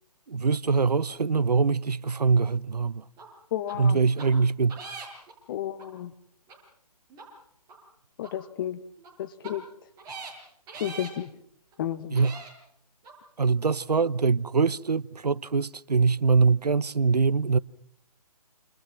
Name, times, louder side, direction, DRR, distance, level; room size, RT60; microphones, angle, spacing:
voice 1, 0.3-3.0 3.8-4.8 12.1-12.4 13.4-17.6, right 4 dB, 80° right, 1.0 m, -23 dB
sound 1, 3.2-3.3 3.7-3.8 4.2-4.3 4.7-5.3 5.8-5.9 6.5-6.6 7.1-7.2 7.7-7.8 8.2-8.3 9.0-9.1 9.4-9.5 10.0-10.3 10.7-11.1 11.7-11.8 12.1-12.5 13.0-13.1, right 4 dB, 20° right, 7.7 m, -41 dB
voice 2, 3.5-4.0 5.5-6.1 8.2-8.8 9.2-9.6 10.8-11.3 11.8-12.2, left 11 dB, 35° left, 1.6 m, -32 dB
29.5 x 28.5 x 6.0 m
figure-of-eight pair, 145°, 20 cm